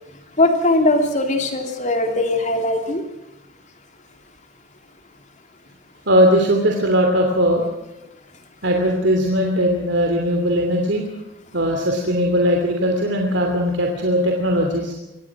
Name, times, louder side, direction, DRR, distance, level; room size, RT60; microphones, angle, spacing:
voice 1, 0.4-3.0, left 2 dB, 35° left, 5 dB, 2.9 m, -19 dB
voice 2, 6.1-7.7 8.6-11.0 11.5-14.9, equal, 60° right, 2 dB, 3.0 m, -19 dB
24.5 x 18.5 x 6.1 m, 0.96 s
head